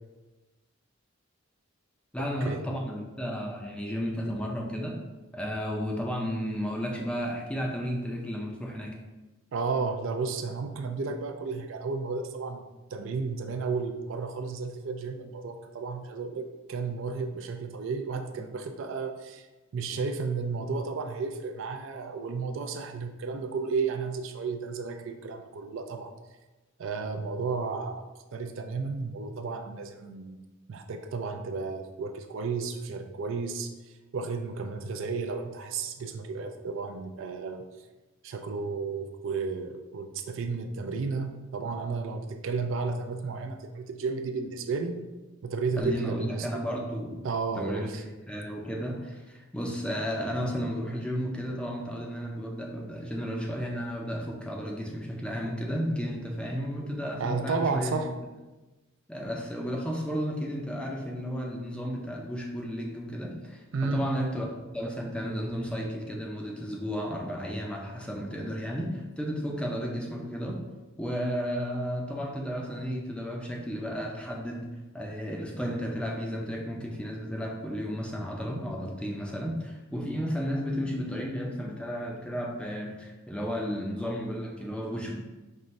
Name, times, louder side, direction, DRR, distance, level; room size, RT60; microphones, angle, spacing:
voice 1, 2.1-5.0 5.3-9.0 45.8-47.2 47.6-58.0 59.1-64.4 64.7-70.6 71.0-74.7 74.9-85.2, equal, 5° left, -1 dB, 0.4 m, -33 dB
voice 2, 9.5-12.6 12.9-19.5 19.7-26.1 26.8-30.4 30.7-37.6 38.2-45.0 45.4-46.5 47.2-48.0 57.2-58.1 63.7-64.3, right 4 dB, 65° right, 6 dB, 0.4 m, -33 dB
5.3 x 2.5 x 3.1 m, 1.1 s
head